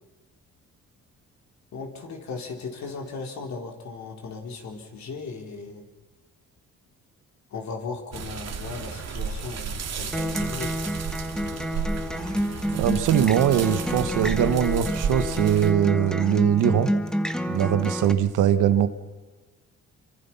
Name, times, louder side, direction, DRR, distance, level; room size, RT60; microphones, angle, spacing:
voice 1, 1.7-5.9 7.5-10.8, left 4 dB, 65° left, 2 dB, 4.4 m, -37 dB
sound 1, 8.1-15.7, right 5 dB, 60° right, 2.6 m, -33 dB
Acoustic guitar, 10.1-18.1, equal, ahead, 1.5 m, -28 dB
voice 2, 12.7-16.9 17.5-18.9, right 10 dB, 85° right, 10 dB, 1.6 m, -22 dB
27.0 x 24.5 x 5.8 m, 1.3 s
cardioid pair, 90°, 30 cm